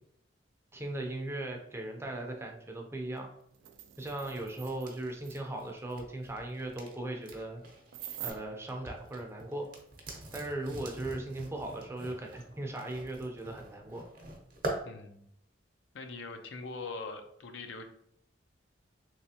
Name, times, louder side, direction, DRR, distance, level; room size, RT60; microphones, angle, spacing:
voice 1, 0.7-3.3 4.0-7.6 8.2-9.7 10.3-14.1, right 1 dB, 15° right, 2 dB, 0.5 m, -38 dB
sound 1, 3.2-3.3 3.5-5.0 5.2-5.3 7.9-8.3, right 11 dB, 85° right, 0.3 m, -44 dB
sound 2, 4.1-8.4 8.7-14.8, right 1 dB, 50° right, 0.8 m, -44 dB
voice 2, 14.8-15.3 15.9-17.8, left 3 dB, 70° left, 6 dB, 0.5 m, -42 dB
3.2 x 3.1 x 2.8 m, 0.70 s
head